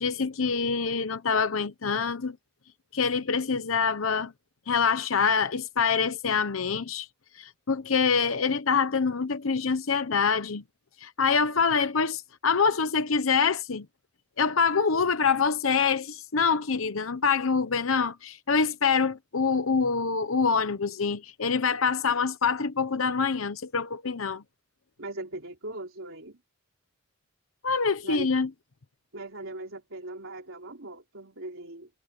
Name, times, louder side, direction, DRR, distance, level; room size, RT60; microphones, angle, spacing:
voice 1, 0.0-2.4 2.9-4.3 4.7-7.1 7.4-10.6 11.0-13.9 14.4-24.4 27.6-28.5, left 5 dB, 85° left, 0.9 m, -25 dB
voice 2, 25.0-26.4 28.0-28.3 29.1-31.9, right 2 dB, 75° right, 3.7 m, -39 dB
head